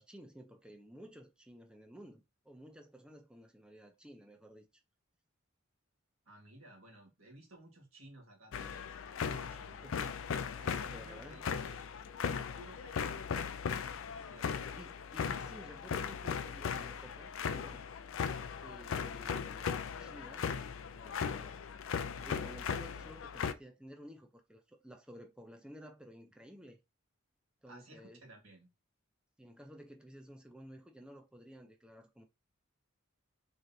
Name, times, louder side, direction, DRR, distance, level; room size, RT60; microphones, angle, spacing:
voice 1, 0.0-4.7 8.7-8.9 9.8-10.2 10.9-11.5 14.8-17.8 18.6-20.5 21.0-21.6 22.2-26.8 27.6-28.2 29.4-32.2, equal, 5° right, 0.5 m, -53 dB
voice 2, 6.2-8.9 9.2-9.9 10.6-11.4 11.7-11.9 12.5-13.3 14.1-14.7 27.7-28.7, right 1 dB, 85° right, 1.8 m, -56 dB
sound 1, 8.5-23.5, left 6 dB, 65° left, 0.4 m, -38 dB
3.8 x 3.2 x 2.7 m
head